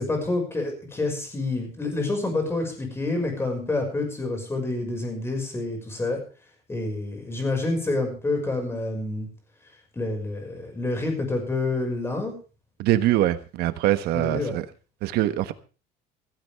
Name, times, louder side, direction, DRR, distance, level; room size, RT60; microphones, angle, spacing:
voice 1, 0.0-6.2 6.7-9.3 9.9-12.3 14.1-14.5, left 2 dB, 15° left, 5.8 m, -28 dB
voice 2, 12.8-14.6 15.0-15.5, right 14 dB, 70° right, 1.3 m, -23 dB
16.0 x 15.5 x 3.6 m
cardioid pair, 140°, 17 cm